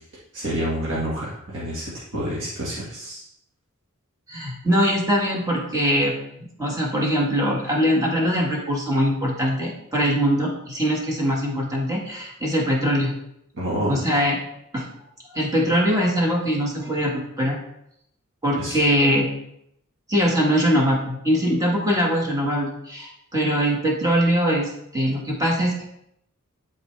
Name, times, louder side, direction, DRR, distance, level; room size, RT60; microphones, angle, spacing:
voice 1, 0.3-3.2 13.5-14.0 18.6-18.8, equal, 55° right, -8 dB, 1.8 m, -28 dB
voice 2, 4.3-6.1 6.4-13.1 13.9-14.4 14.7-14.9 15.3-17.6 18.4-19.3 20.1-25.8, equal, 15° right, -2 dB, 1.7 m, -22 dB
12.0 x 4.4 x 3.4 m, 0.76 s
head